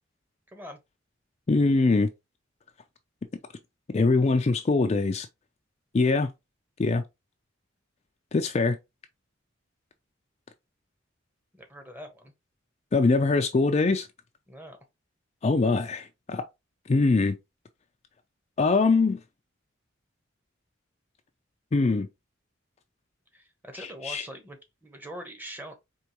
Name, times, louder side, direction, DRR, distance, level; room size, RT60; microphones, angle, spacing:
voice 1, 0.5-0.8 11.5-12.3 14.5-14.8 23.3-25.7, right 1 dB, 10° right, 0.9 m, -43 dB
voice 2, 1.5-2.1 3.9-5.3 5.9-6.3 6.8-7.0 8.3-8.8 12.9-14.1 15.4-16.4 16.9-17.3 18.6-19.2 21.7-22.1 23.7-24.3, left 3 dB, 35° left, 0.4 m, -23 dB
4.6 x 3.0 x 2.9 m
head